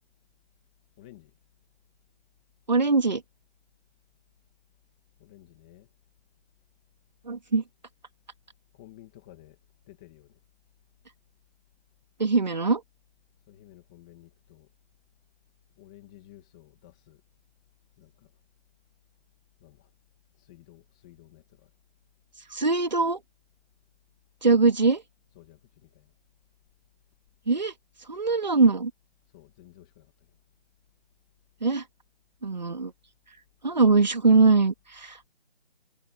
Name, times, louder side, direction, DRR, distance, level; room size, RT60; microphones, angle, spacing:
voice 1, 1.0-1.3 5.2-5.9 8.7-9.6 9.9-10.4 13.5-14.7 15.8-17.2 18.0-18.3 19.6-19.9 20.4-21.7 24.5-24.6 25.3-26.1 29.3-30.1, left 14 dB, 5° left, 2.2 m, -53 dB
voice 2, 2.7-3.2 7.3-7.6 12.2-12.8 22.5-23.2 24.4-25.0 27.5-27.7 28.1-28.9 31.6-31.8 32.4-32.9 33.6-35.3, right 4 dB, 40° right, 3.4 m, -22 dB
figure-of-eight pair, 175°, 33 cm